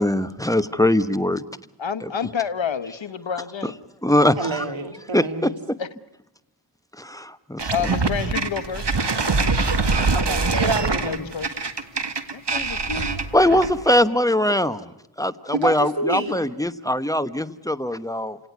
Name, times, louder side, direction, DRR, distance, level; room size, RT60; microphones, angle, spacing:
voice 1, 0.0-1.4 2.0-2.1 3.6-3.7 4.0-4.6 5.1-5.8 7.0-7.9 13.3-14.8 15.2-18.4, left 1 dB, 10° left, 12 dB, 1.1 m, -21 dB
voice 2, 1.8-3.8 5.8-5.9 7.7-9.0 11.0-11.5 12.3-13.2, left 7 dB, 85° left, 13 dB, 1.1 m, -29 dB
voice 3, 4.4-5.5 10.1-11.2 15.5-16.4, right 2 dB, 85° right, 8 dB, 2.3 m, -27 dB
sound 1, 7.6-13.8, right 3 dB, 65° right, 1.9 m, -23 dB
29.0 x 18.0 x 9.5 m, 0.88 s
wide cardioid pair, 50°, 45 cm